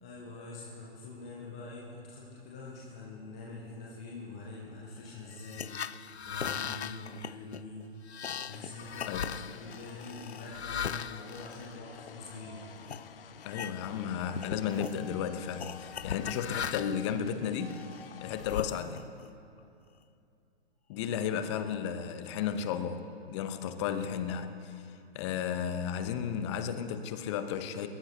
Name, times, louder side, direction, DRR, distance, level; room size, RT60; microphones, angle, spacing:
voice 1, 0.0-7.9 8.5-12.7 18.7-18.8, left 2 dB, 5° left, -4 dB, 0.3 m, -45 dB
sound 1, 5.3-12.4 12.9-13.0 13.4-14.1 14.3-15.0 15.6-17.1 17.7-19.2, left 8 dB, 90° left, 0.5 m, -39 dB
sound 2, 8.5-18.6, left 7 dB, 60° left, 0.8 m, -51 dB
voice 2, 9.1-9.4 13.4-17.8 18.2-19.0 20.9-27.9, left 8 dB, 25° left, 10 dB, 1.0 m, -34 dB
21.0 x 20.5 x 2.9 m, 2.6 s
figure-of-eight pair, 130°, 32 cm